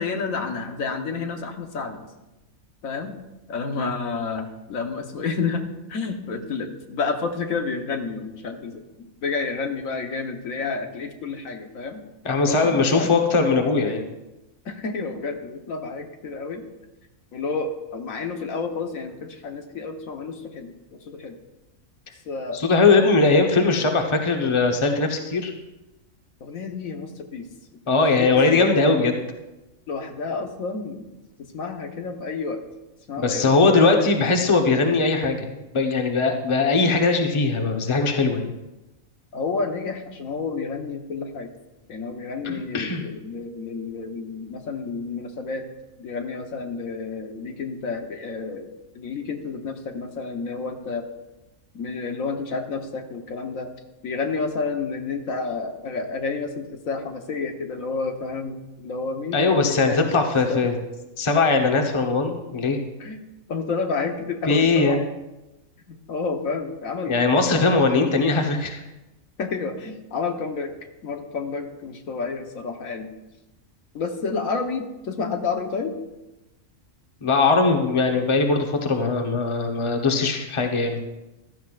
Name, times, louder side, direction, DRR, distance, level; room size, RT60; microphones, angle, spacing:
voice 1, 0.0-2.1 2.8-3.1 3.5-5.6 5.9-8.8 9.2-12.0 12.5-13.1 13.8-14.1 14.6-16.6 17.3-21.4 22.3-22.6 26.4-27.5 27.9-28.7 29.9-31.0 31.4-32.6 33.1-33.9 39.3-41.5 41.9-45.7 46.0-48.7 48.9-51.0 51.7-53.7 54.0-60.1 60.5-60.7 63.0-63.2 63.5-65.0 65.9-67.7 69.4-70.7 71.0-73.1 73.9-76.0, left 4 dB, 80° left, 4 dB, 1.5 m, -30 dB
voice 2, 12.2-14.0 22.5-25.5 27.9-29.2 33.2-38.5 42.4-43.0 59.3-60.8 61.2-62.8 64.5-65.0 67.0-68.8 77.2-81.0, left 3 dB, 25° left, 3 dB, 1.0 m, -20 dB
15.0 x 12.5 x 2.5 m, 1.0 s
omnidirectional pair, 1.4 m